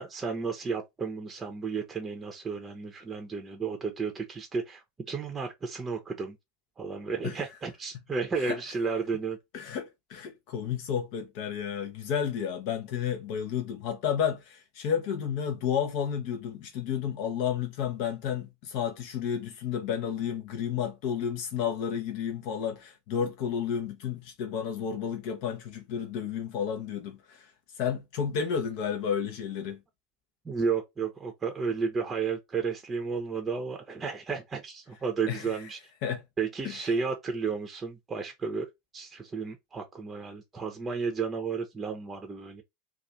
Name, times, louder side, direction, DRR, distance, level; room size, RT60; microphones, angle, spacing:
voice 1, 0.0-6.4 6.8-9.4 30.4-35.8 36.4-42.6, right 5 dB, 20° right, 0.6 m, -33 dB
voice 2, 9.5-27.5 27.8-29.8 35.3-35.5 36.0-36.2 36.6-36.7, left 8 dB, 55° left, 0.6 m, -31 dB
2.5 x 2.4 x 4.1 m
figure-of-eight pair, 80°, 0 cm